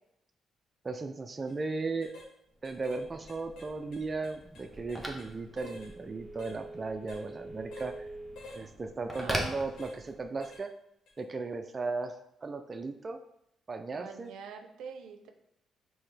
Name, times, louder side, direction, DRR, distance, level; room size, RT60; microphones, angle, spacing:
voice 1, 0.8-2.1 2.6-8.1 8.6-10.7 11.2-12.2 12.4-13.2 13.7-14.3, right 3 dB, 30° right, 7 dB, 0.3 m, -36 dB
sound 1, 1.4-1.6 2.0-2.3 2.6-3.0 3.3-5.3 5.6-5.9 6.4-6.6 7.1-7.2 7.7-7.9 8.4-8.6 9.1-9.3 9.8-10.0 10.4-10.6 11.1-11.2, left 2 dB, 80° left, 1.0 m, -49 dB
Telephone, 2.5-10.4, equal, 5° left, 0.8 m, -42 dB
voice 2, 9.2-10.0 13.9-15.3, right 6 dB, 85° right, 6 dB, 0.5 m, -46 dB
5.5 x 2.7 x 3.2 m, 0.78 s
cardioid pair, 90°, 0 cm